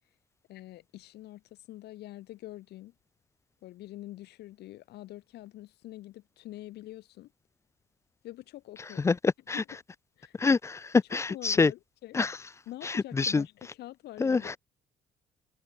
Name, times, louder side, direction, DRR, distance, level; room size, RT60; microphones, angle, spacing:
voice 1, 0.5-2.9 3.6-7.3 8.2-9.1 9.5-9.6 10.2-10.4 11.3-12.2 12.7-13.5 13.8-14.6, left 15 dB, 75° left, 7.7 m, -45 dB
voice 2, 9.0-9.6 10.4-11.7 12.1-12.4 12.8-13.4 14.2-14.6, left 4 dB, 15° left, 0.3 m, -26 dB
cardioid pair, 110°, 17 cm